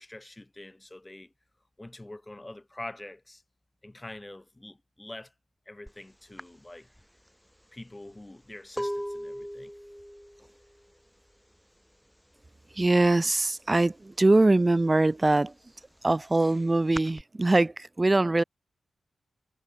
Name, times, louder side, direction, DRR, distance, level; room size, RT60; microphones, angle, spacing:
voice 1, 0.0-1.3 1.8-3.4 3.8-5.3 5.7-6.9 7.7-9.7, left 1 dB, 20° left, 5.9 m, -45 dB
sound 1, 5.9-6.0 6.4-12.1 12.3-12.8 13.1-14.3 14.6-17.2, equal, ahead, 2.9 m, -39 dB
voice 2, 12.8-15.5 16.0-18.4, right 2 dB, 25° right, 0.5 m, -22 dB
cardioid pair, 65°, 0 cm